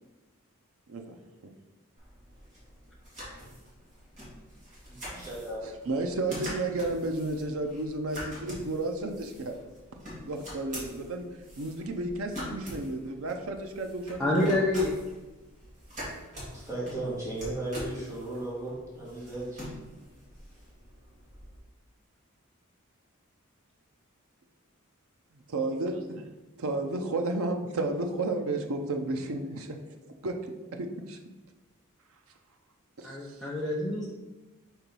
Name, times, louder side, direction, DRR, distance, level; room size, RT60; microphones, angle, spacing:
sound 1, 2.0-21.6, equal, 35° right, 2.0 m, -44 dB
voice 1, 4.9-5.6 16.5-19.7, right 2 dB, 15° right, -8 dB, 2.0 m, -36 dB
voice 2, 5.6-9.6 10.2-11.3 11.6-14.7 25.5-26.2 26.6-29.8 30.2-31.2 33.0-33.4, right 2 dB, 70° right, 4 dB, 0.6 m, -32 dB
voice 3, 14.2-15.0 33.0-34.1, left 1 dB, ahead, -7 dB, 0.7 m, -27 dB
4.5 x 4.0 x 5.3 m, 1.1 s
head